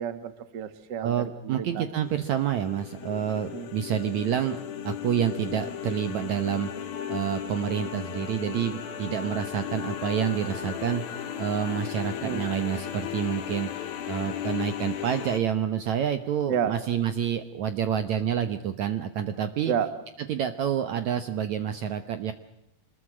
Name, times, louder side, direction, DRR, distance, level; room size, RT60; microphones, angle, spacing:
voice 1, 0.0-1.1 1.4-1.8 3.5-3.7 12.2-12.5 16.5-16.7 19.7-19.9, right 8 dB, 45° right, 11 dB, 1.5 m, -30 dB
voice 2, 1.0-4.6 4.8-19.7 20.3-22.3, right 9 dB, 65° right, 9 dB, 2.0 m, -28 dB
sound 1, 2.0-15.4, left 9 dB, 80° left, 3.6 m, -35 dB
26.0 x 21.0 x 7.5 m, 0.84 s
omnidirectional pair, 4.2 m